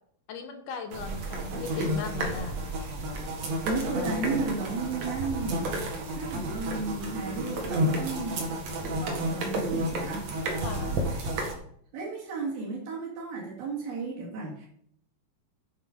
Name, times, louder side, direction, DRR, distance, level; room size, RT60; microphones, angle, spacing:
voice 1, 0.3-2.6 10.6-11.1, left 4 dB, 70° left, 6 dB, 2.3 m, -37 dB
sound 1, 0.9-11.5, right 1 dB, 55° right, 2.5 m, -31 dB
voice 2, 3.6-5.8 6.1-8.5 9.0-10.3 11.9-14.7, right 3 dB, 75° right, -4 dB, 4.1 m, -33 dB
9.2 x 7.1 x 5.2 m, 0.63 s
omnidirectional pair, 4.3 m